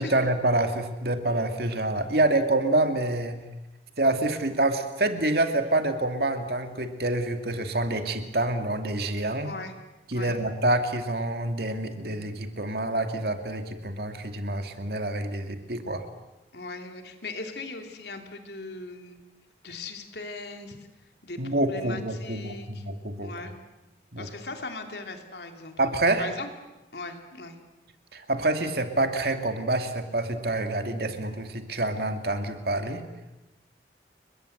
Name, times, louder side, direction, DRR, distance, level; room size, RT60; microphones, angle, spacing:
voice 1, 0.0-3.4 4.0-9.5 10.1-16.1 21.4-23.3 24.1-24.3 25.8-26.3 28.1-33.0, right 2 dB, 60° right, 7 dB, 2.4 m, -27 dB
voice 2, 16.5-19.2 19.6-20.8 21.2-22.8 23.2-23.5 24.2-25.7 26.2-26.5 26.9-27.6, left 3 dB, 70° left, 5 dB, 3.2 m, -39 dB
30.0 x 22.0 x 8.0 m, 1.0 s
head